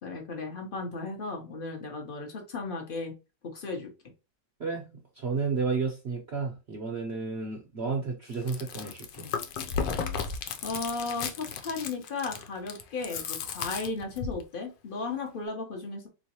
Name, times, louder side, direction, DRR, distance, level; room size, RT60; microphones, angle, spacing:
voice 1, 0.0-3.2 3.4-3.9 10.2-10.3 10.6-16.1, left 3 dB, 45° left, 0.7 m, -35 dB
voice 2, 5.2-9.3, right 4 dB, 55° right, 0.7 m, -32 dB
Chewing mastication, 8.3-14.4, left 6 dB, 85° left, 1.3 m, -34 dB
3.7 x 3.1 x 2.8 m
omnidirectional pair, 1.9 m